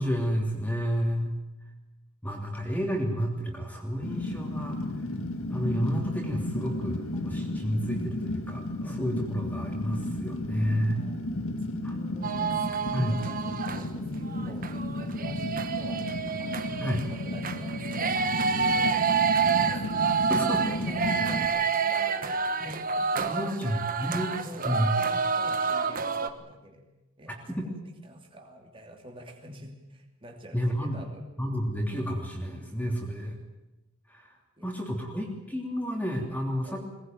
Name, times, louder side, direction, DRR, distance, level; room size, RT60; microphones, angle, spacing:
voice 1, 0.0-1.4 2.2-4.8 5.5-11.0 11.8-11.9 12.9-13.2 16.8-17.0 20.3-20.7 22.6-22.7 23.3-24.3 24.6-25.0 27.5-27.7 30.5-31.0 31.4-33.4 34.1-34.3 34.6-36.8, equal, 5° left, 0 dB, 3.0 m, -30 dB
Fire, 4.0-21.5, left 1 dB, 70° left, 1.8 m, -33 dB
voice 2, 10.7-16.0 16.4-19.7 20.3-22.4 22.9-23.7 24.1-24.2 24.4-26.8 27.2-31.2 34.6-34.7 35.1-35.2 36.6-36.9, equal, 25° right, 1 dB, 3.0 m, -46 dB
sound 1, 12.2-13.8 14.2-26.3, right 5 dB, 40° right, 1.3 m, -28 dB
21.5 x 19.0 x 9.3 m, 1.0 s
head